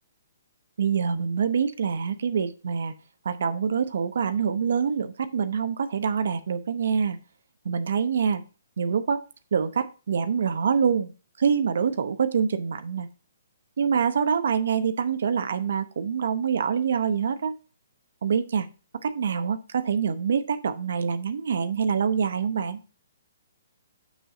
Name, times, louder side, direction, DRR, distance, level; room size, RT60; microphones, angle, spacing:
voice 1, 0.8-2.9 3.2-7.2 7.6-8.4 8.8-9.2 9.5-11.1 11.4-13.1 13.8-17.6 18.2-18.7 19.0-22.8, right 6 dB, 70° right, 0.8 m, -25 dB
6.6 x 6.4 x 3.7 m
hypercardioid pair, 150°, 0 cm